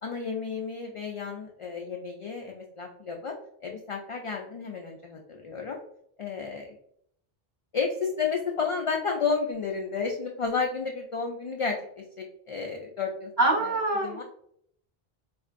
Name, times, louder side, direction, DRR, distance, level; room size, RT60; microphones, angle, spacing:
voice 1, 0.0-3.4 3.6-5.8 6.2-6.8 7.7-13.3 13.6-13.7 14.0-14.2, left 5 dB, 55° left, 1 dB, 0.3 m, -32 dB
voice 2, 13.4-14.2, right 2 dB, 25° right, -4 dB, 1.5 m, -24 dB
4.4 x 2.5 x 2.4 m, 0.67 s
omnidirectional pair, 1.0 m